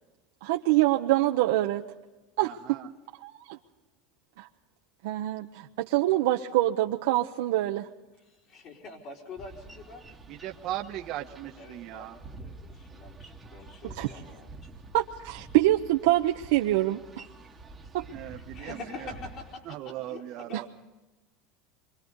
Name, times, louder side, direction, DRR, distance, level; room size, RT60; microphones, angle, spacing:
voice 1, 0.4-1.8 2.4-2.5 3.2-3.6 4.4-4.5 5.0-7.9 14.0-14.1 14.9-17.0 17.9-18.0 20.5-20.7, right 16 dB, 80° right, 2 dB, 0.9 m, -25 dB
voice 2, 2.4-2.9 10.3-12.2 18.1-19.1 19.6-20.7, right 13 dB, 45° right, 3 dB, 1.3 m, -38 dB
voice 3, 8.1-10.0 11.6-14.5 18.2-20.7, left 3 dB, 45° left, -2 dB, 4.4 m, -45 dB
Boat Water vehicle, 9.4-19.6, right 3 dB, 10° right, 1.5 m, -48 dB
27.5 x 24.0 x 4.0 m, 1.1 s
cardioid pair, 160°, 0 cm